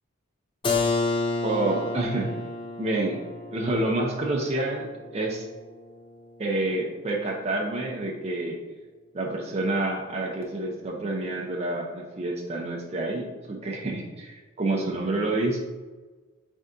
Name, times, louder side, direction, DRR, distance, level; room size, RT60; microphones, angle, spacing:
Keyboard (musical), 0.6-6.2, left 3 dB, 25° left, 0.4 m, -31 dB
voice 1, 1.4-2.3 2.8-3.2 3.5-5.5 6.4-8.6 9.1-15.6, right 2 dB, 30° right, -1 dB, 0.5 m, -28 dB
4.0 x 3.5 x 3.7 m, 1.3 s
head